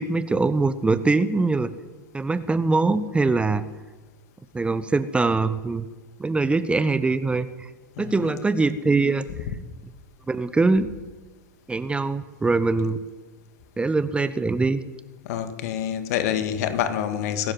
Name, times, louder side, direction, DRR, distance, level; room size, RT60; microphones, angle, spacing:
voice 1, 0.0-1.7 2.1-3.6 4.5-5.9 6.2-7.7 8.0-9.3 10.3-10.9 11.7-13.0 13.8-14.8, right 3 dB, 10° right, 14 dB, 1.0 m, -22 dB
voice 2, 8.0-8.3 15.2-17.5, left 10 dB, 55° left, 10 dB, 2.2 m, -27 dB
22.0 x 13.0 x 9.5 m, 1.2 s
figure-of-eight pair, 85°, 10 cm